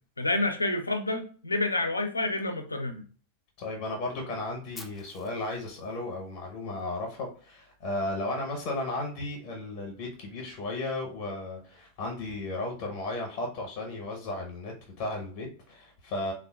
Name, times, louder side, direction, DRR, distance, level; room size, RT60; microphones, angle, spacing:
voice 1, 0.2-3.0, left 2 dB, 80° left, 6 dB, 0.4 m, -28 dB
voice 2, 3.6-16.3, left 2 dB, 45° left, 0 dB, 0.8 m, -34 dB
Fire, 4.7-6.8, left 3 dB, 15° left, 0.5 m, -50 dB
3.4 x 2.3 x 2.2 m, 0.41 s
figure-of-eight pair, 90°, 0 cm